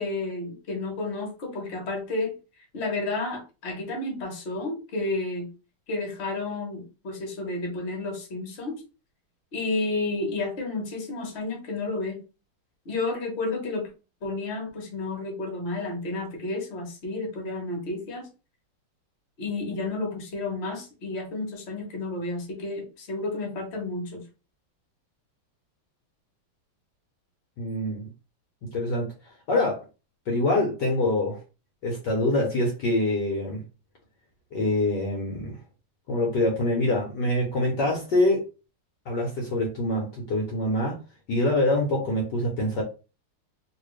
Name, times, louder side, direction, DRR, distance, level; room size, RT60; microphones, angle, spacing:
voice 1, 0.0-2.3 2.7-5.5 5.9-8.8 9.5-12.2 12.8-13.9 14.2-18.3 19.4-24.2, left 2 dB, 35° left, 1 dB, 1.2 m, -31 dB
voice 2, 27.6-28.1 28.7-29.1 29.5-29.8 30.3-31.4 31.8-33.6 34.5-35.5 36.1-38.4 39.1-41.0 41.3-42.8, left 1 dB, 60° left, -1 dB, 1.4 m, -25 dB
3.2 x 3.0 x 3.2 m, 0.31 s
omnidirectional pair, 2.4 m